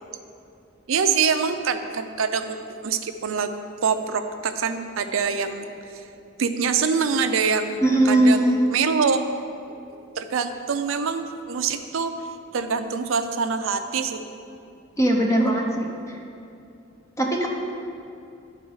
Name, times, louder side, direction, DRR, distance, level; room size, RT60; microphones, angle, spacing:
voice 1, 0.9-3.5 3.8-5.7 5.9-6.0 6.4-9.2 9.9-12.1 12.5-14.3, right 5 dB, 70° right, 8 dB, 0.5 m, -25 dB
voice 2, 7.8-8.7 15.0-16.2 17.2-17.5, right 1 dB, 15° left, 0 dB, 0.7 m, -20 dB
11.5 x 4.1 x 4.7 m, 2.6 s
head